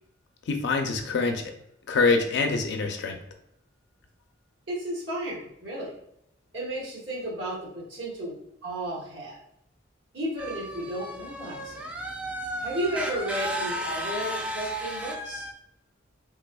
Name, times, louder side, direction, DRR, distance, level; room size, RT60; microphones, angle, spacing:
voice 1, 0.5-1.4 1.9-3.2, left 4 dB, 65° left, 4 dB, 0.4 m, -25 dB
voice 2, 4.7-5.9 6.5-8.3 8.6-9.4 10.1-11.7 12.6-15.5, right 1 dB, 80° right, -6 dB, 1.2 m, -33 dB
sound 1, 10.4-15.5, right 1 dB, 5° right, 0.4 m, -34 dB
3.3 x 3.3 x 2.2 m, 0.77 s
head